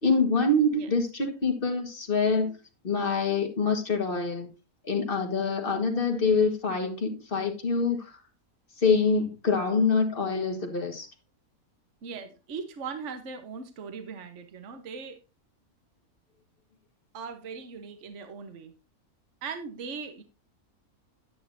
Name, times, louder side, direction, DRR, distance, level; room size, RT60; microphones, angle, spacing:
voice 1, 0.0-2.5 2.8-4.5 4.8-8.1 8.8-11.1, left 4 dB, 40° left, 4 dB, 1.8 m, -25 dB
voice 2, 12.0-15.2 17.1-18.7 19.4-20.2, right 5 dB, 55° right, 7 dB, 1.4 m, -39 dB
9.8 x 9.6 x 2.7 m, 0.28 s
omnidirectional pair, 1.5 m